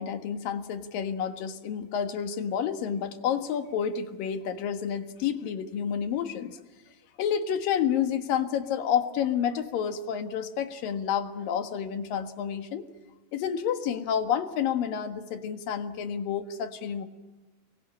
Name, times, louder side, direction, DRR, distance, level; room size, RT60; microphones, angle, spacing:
voice 1, 0.0-6.6 7.2-12.9 13.3-17.0, left 8 dB, 70° left, 8 dB, 3.2 m, -29 dB
29.5 x 22.5 x 8.7 m, 1.1 s
omnidirectional pair, 4.3 m